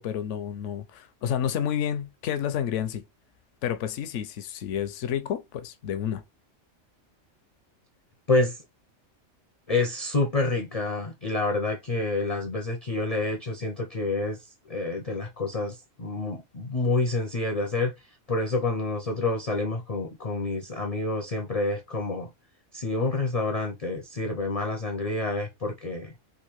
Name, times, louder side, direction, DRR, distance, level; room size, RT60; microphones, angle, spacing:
voice 1, 0.0-3.0 3.6-6.2, left 9 dB, 70° left, 0.9 m, -30 dB
voice 2, 9.7-14.4 14.7-17.9 18.3-22.3 22.7-26.1, left 2 dB, 40° left, 0.5 m, -28 dB
3.6 x 2.5 x 3.0 m
omnidirectional pair, 1.4 m